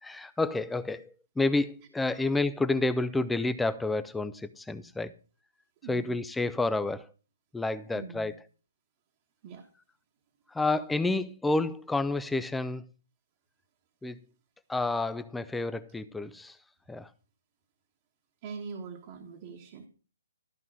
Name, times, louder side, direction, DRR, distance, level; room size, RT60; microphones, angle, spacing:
voice 1, 0.0-5.2 5.9-7.1 7.5-8.4 10.5-12.8 14.0-14.2 14.7-16.6 16.9-17.1, left 2 dB, 5° left, 0.4 m, -29 dB
voice 2, 5.8-6.2 7.9-8.3 9.4-9.7 18.4-19.9, right 5 dB, 25° right, 1.3 m, -43 dB
13.5 x 5.4 x 6.2 m
hypercardioid pair, 170°, 0 cm